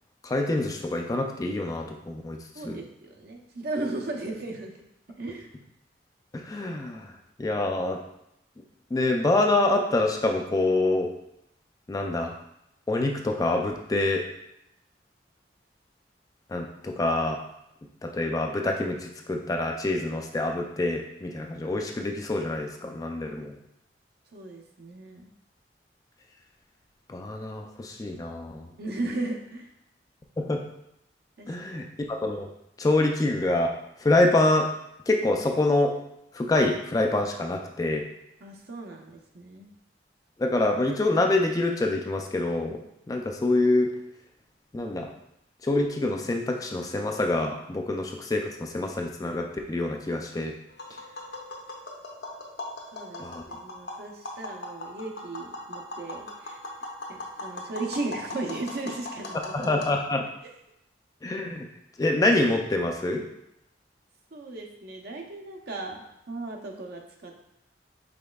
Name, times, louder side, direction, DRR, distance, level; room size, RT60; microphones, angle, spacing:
voice 1, 0.2-2.4 2.6-2.8 6.3-7.1 7.4-8.0 8.9-11.1 11.9-12.3 12.9-14.3 16.5-17.4 18.0-23.5 27.1-28.7 30.4-30.6 31.5-32.5 32.8-33.7 34.0-34.7 35.1-35.9 36.3-38.1 40.4-42.8 43.1-43.9 44.7-45.1 45.6-50.5 53.2-53.4 59.5-60.2 61.2-61.7 62.0-63.2, left 2 dB, 20° left, 3 dB, 0.3 m, -26 dB
voice 2, 2.5-4.7 5.2-5.5 24.3-25.3 28.8-29.7 31.4-31.8 38.4-39.7 52.9-56.6 57.1-59.7 60.4-60.5 64.3-67.4, right 2 dB, 60° right, 1 dB, 0.6 m, -36 dB
Tap, 50.7-59.9, left 2 dB, 65° left, 0.8 m, -39 dB
5.1 x 4.0 x 2.3 m, 0.81 s
head